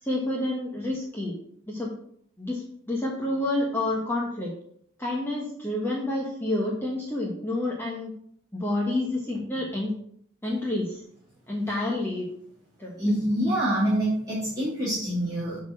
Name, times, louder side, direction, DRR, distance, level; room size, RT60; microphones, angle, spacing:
voice 1, 0.0-1.3 1.7-1.9 2.4-4.5 5.0-8.1 8.5-9.9 10.4-11.0 11.5-12.3 12.8-13.0, left 1 dB, 10° left, -3 dB, 1.1 m, -29 dB
voice 2, 13.0-15.6, right 1 dB, 20° right, -10 dB, 2.4 m, -26 dB
8.1 x 3.9 x 6.3 m, 0.66 s
head